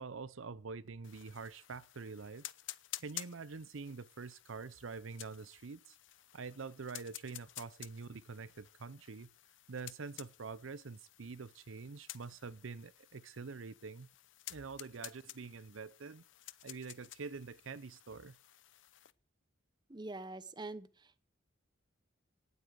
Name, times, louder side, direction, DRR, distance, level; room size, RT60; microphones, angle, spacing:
voice 1, 0.0-2.4 3.0-6.0 6.3-9.3 9.7-14.1 14.5-16.2 16.6-18.4, right 4 dB, 90° right, 0.7 m, -46 dB
sound 1, 1.0-19.1, left 14 dB, 70° left, 0.7 m, -52 dB
voice 2, 19.9-21.3, right 2 dB, 25° right, 0.9 m, -45 dB
18.0 x 8.3 x 7.8 m
head